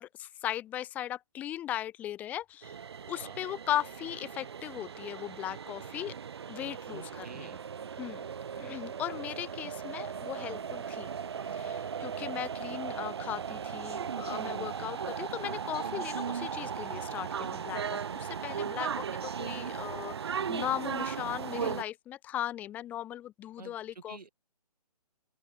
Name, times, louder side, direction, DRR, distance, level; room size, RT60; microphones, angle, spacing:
voice 1, 0.0-2.8 3.1-6.2 6.5-7.6 8.0-8.3 8.5-11.1 11.4-24.3, left 12 dB, 5° left, 1.2 m, -38 dB
sound 1, 2.6-21.8, right 7 dB, 40° right, 0.6 m, -37 dB
voice 2, 6.9-7.6 12.2-12.4 23.6-24.3, right 4 dB, 80° right, 7.1 m, -48 dB
open air
hypercardioid pair, 170°, 20 cm